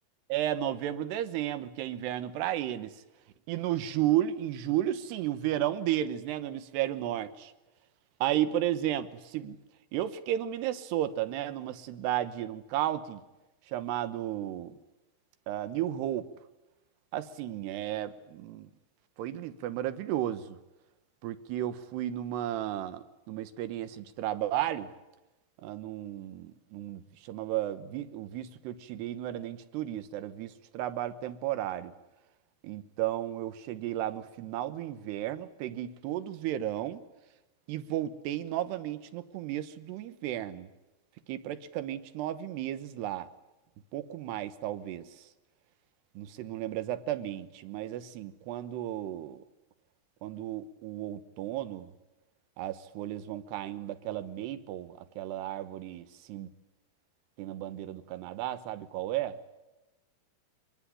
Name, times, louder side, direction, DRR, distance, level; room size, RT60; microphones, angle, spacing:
voice 1, 0.3-3.0 3.5-7.5 8.2-9.6 9.9-13.2 13.7-14.8 15.5-16.3 17.1-18.7 19.2-20.6 21.2-24.9 25.6-31.9 32.6-37.0 37.7-40.7 41.3-43.3 43.9-45.1 46.2-49.4 50.2-51.9 52.6-56.0 56.3-56.5 57.4-59.4, right 12 dB, 85° right, 3.2 m, -33 dB
23.0 x 20.0 x 9.9 m
omnidirectional pair, 4.6 m